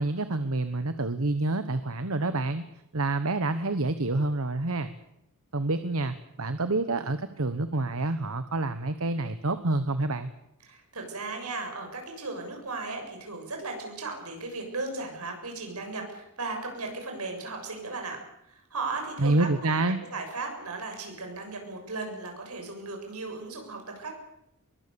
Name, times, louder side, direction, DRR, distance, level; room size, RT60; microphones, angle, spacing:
voice 1, 0.0-2.6 2.9-4.9 5.5-10.3 19.2-20.0, right 2 dB, 70° right, 11 dB, 1.2 m, -28 dB
voice 2, 10.6-18.2 18.4-19.8 20.1-24.2, right 3 dB, 85° right, 3 dB, 7.3 m, -36 dB
24.5 x 22.5 x 7.0 m, 0.79 s
head